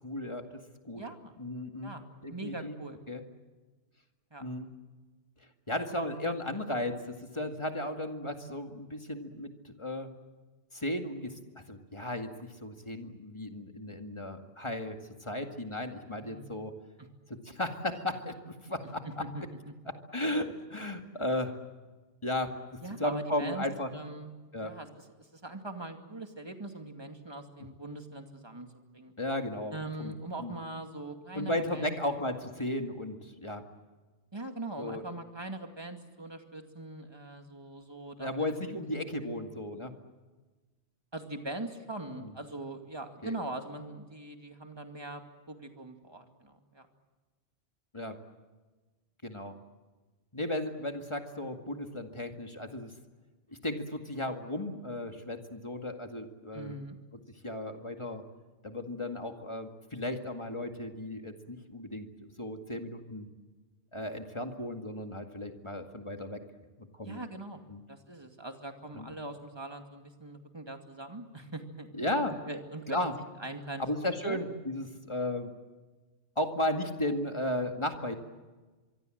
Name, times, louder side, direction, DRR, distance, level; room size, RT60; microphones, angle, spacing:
voice 1, 0.0-0.4 0.8-1.0 1.4-2.0 2.2-2.8 3.1-3.2 4.4-4.7 5.7-10.1 10.7-11.3 11.7-16.7 17.4-19.0 19.9-21.6 22.2-22.5 23.0-23.9 24.5-24.7 29.2-30.1 30.4-30.5 31.3-33.6 34.8-35.0 38.2-39.9 42.2-42.3 43.2-43.3 47.9-48.2 49.2-49.6 50.3-52.9 53.5-56.7 57.4-58.2 58.6-63.3 63.9-66.4 66.8-67.2 67.7-67.8 68.9-69.1 71.9-72.3 72.9-73.1 73.8-75.5 76.4-78.1, left 1 dB, 25° left, 5 dB, 2.1 m, -35 dB
voice 2, 0.9-1.4 1.8-3.0 4.3-4.4 16.2-16.5 17.0-17.1 19.0-19.4 22.8-24.3 24.6-28.7 28.9-29.1 29.7-32.0 34.3-38.5 41.1-45.2 45.5-46.9 56.5-57.0 67.0-67.6 67.9-71.9 72.5-73.1 73.4-74.4, right 2 dB, 20° right, 5 dB, 2.4 m, -42 dB
25.0 x 24.0 x 7.8 m, 1.3 s
omnidirectional pair, 1.2 m